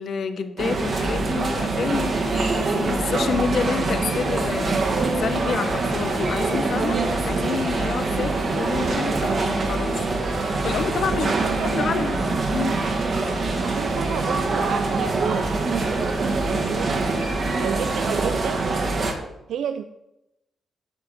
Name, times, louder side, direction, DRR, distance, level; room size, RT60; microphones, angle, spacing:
voice 1, 0.0-10.0 10.4-11.3 11.7-12.2 12.5-12.8, left 5 dB, 65° left, 0.9 m, -28 dB
sound 1, 0.6-19.1, right 3 dB, 50° right, 1.8 m, -24 dB
sound 2, 3.3-18.7, left 2 dB, 25° left, 1.3 m, -41 dB
voice 2, 11.1-12.4 13.6-17.1 17.6-18.7 19.5-19.9, right 8 dB, 80° right, 0.4 m, -31 dB
9.1 x 4.9 x 7.8 m
cardioid pair, 100°, 0 cm